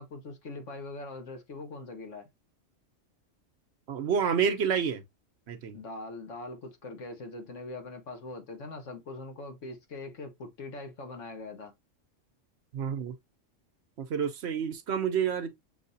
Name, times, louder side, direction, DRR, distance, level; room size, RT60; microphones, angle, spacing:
voice 1, 0.0-2.3 5.7-11.7, left 2 dB, 75° left, 1.6 m, -42 dB
voice 2, 3.9-5.0 5.5-5.8 12.7-13.1 14.0-15.6, right 7 dB, 65° right, 0.9 m, -29 dB
7.0 x 2.8 x 2.6 m
omnidirectional pair, 1.3 m